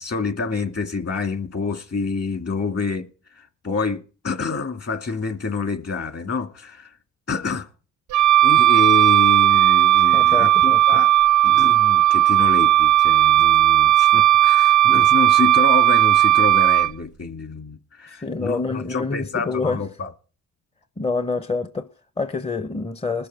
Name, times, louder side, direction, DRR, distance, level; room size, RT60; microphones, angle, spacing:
voice 1, 0.0-3.1 3.4-6.9 7.3-7.7 8.4-11.1 11.4-20.1, left 4 dB, 45° left, 2.2 m, -27 dB
Wind instrument woodwind instrument, 8.1-16.9, right 13 dB, 60° right, 0.5 m, -15 dB
voice 2, 10.1-11.0 18.1-19.8 21.0-23.3, left 4 dB, 15° left, 0.7 m, -27 dB
20.5 x 6.8 x 4.7 m
cardioid pair, 65°, 36 cm